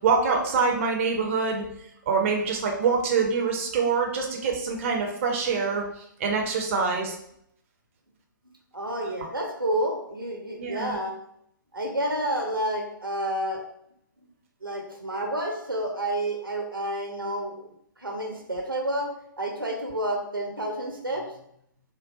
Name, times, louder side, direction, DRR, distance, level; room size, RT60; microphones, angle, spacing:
voice 1, 0.0-1.6 2.1-5.8 6.2-7.2 10.6-11.0, right 5 dB, 40° right, 1 dB, 0.4 m, -25 dB
voice 2, 8.7-11.2 11.7-13.6 14.6-17.7 18.0-19.1 19.4-21.2, right 1 dB, 85° right, 1 dB, 0.7 m, -29 dB
3.8 x 2.1 x 2.4 m, 0.72 s
figure-of-eight pair, 130°, 11 cm